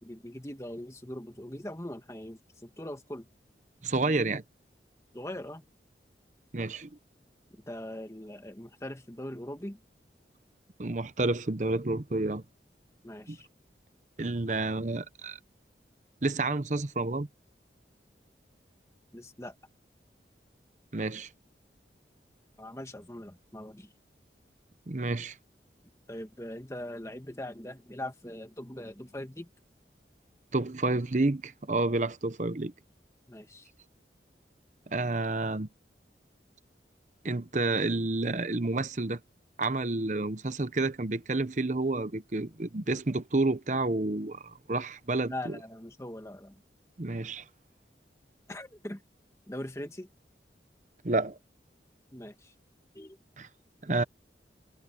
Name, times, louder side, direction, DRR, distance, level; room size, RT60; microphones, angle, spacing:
voice 1, 0.0-3.3 5.1-5.6 7.5-9.8 13.0-13.5 19.1-19.5 22.6-23.9 26.1-29.5 33.3-33.7 45.3-46.6 48.5-49.0 49.5-50.1 52.1-52.5 52.9-53.2, left 1 dB, 15° left, 1.5 m, -41 dB
voice 2, 3.8-4.4 6.5-6.9 10.8-12.4 13.3-13.4 14.2-15.4 16.2-17.3 20.9-21.3 24.9-25.4 30.5-32.7 34.9-35.7 37.2-39.2 39.6-45.6 47.0-47.4 51.0-51.4 53.4-53.5 53.8-54.0, right 2 dB, 45° right, 0.9 m, -29 dB
head